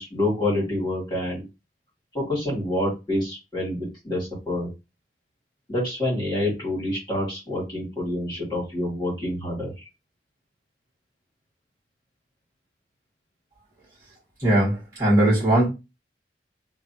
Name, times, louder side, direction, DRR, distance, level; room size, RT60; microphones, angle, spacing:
voice 1, 0.0-1.4 2.1-4.7 5.7-9.7, left 1 dB, 25° left, 1.9 m, -27 dB
voice 2, 14.4-15.7, right 1 dB, 15° right, 1.7 m, -19 dB
3.2 x 2.4 x 2.8 m
head